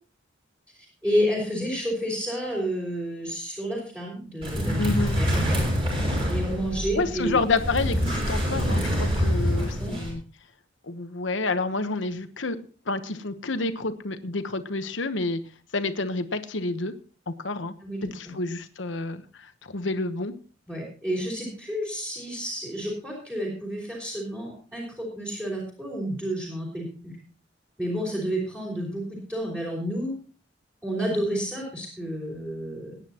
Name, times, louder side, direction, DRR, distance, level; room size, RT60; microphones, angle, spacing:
voice 1, 1.0-4.8 5.1-5.3 6.3-7.4 9.8-9.9 17.8-18.3 20.7-27.1 27.8-30.1 30.8-33.0, equal, 10° right, -5 dB, 4.7 m, -30 dB
sound 1, 4.4-10.1, equal, 30° right, 6.4 m, -26 dB
voice 2, 4.8-5.2 6.9-10.2 10.8-12.6 12.9-15.4 15.7-16.9 17.3-17.7 18.1-20.3, left 3 dB, 70° left, 10 dB, 1.1 m, -29 dB
21.0 x 9.8 x 3.0 m, 0.39 s
head